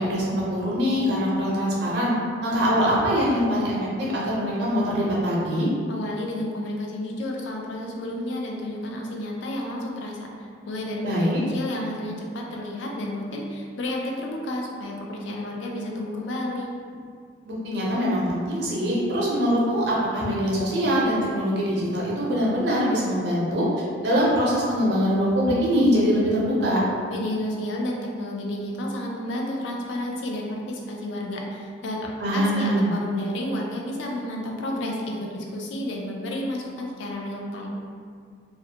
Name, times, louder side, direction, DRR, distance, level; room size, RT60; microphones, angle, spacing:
voice 1, 0.0-2.1 2.4-5.7 11.0-11.4 17.5-23.6 24.0-26.8 32.2-32.9, equal, 60° right, -5 dB, 0.6 m, -23 dB
voice 2, 5.9-16.7 27.1-37.8, left 1 dB, 75° left, -1 dB, 0.4 m, -31 dB
2.4 x 2.1 x 2.7 m, 2.1 s
head